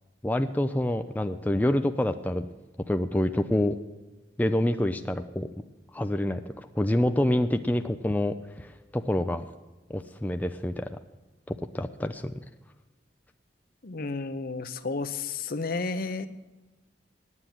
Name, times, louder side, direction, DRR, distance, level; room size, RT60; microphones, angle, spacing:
voice 1, 0.2-2.5 2.9-3.8 4.4-5.5 5.9-9.4 9.9-11.0 11.5-12.3, left 1 dB, 10° left, 7 dB, 0.4 m, -27 dB
voice 2, 13.8-16.3, left 3 dB, 55° left, 10 dB, 0.8 m, -32 dB
9.8 x 8.6 x 9.2 m, 1.1 s
head